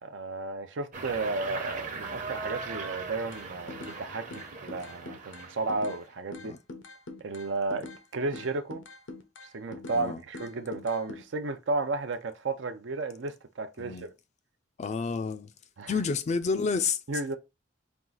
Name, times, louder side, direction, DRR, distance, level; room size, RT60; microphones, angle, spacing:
voice 1, 0.0-6.5 7.2-7.9 8.1-8.8 9.5-14.1 15.8-15.9 17.1-17.4, right 3 dB, 75° right, 0.5 m, -33 dB
sound 1, 0.9-6.1, right 4 dB, 45° right, 0.9 m, -39 dB
sound 2, 3.3-4.0 4.3-6.0 6.3-8.0 8.3-10.0 10.3-11.2, left 2 dB, 80° left, 0.7 m, -43 dB
voice 2, 14.8-15.5 15.9-17.0, left 5 dB, 35° left, 0.4 m, -29 dB
4.5 x 2.4 x 3.8 m
head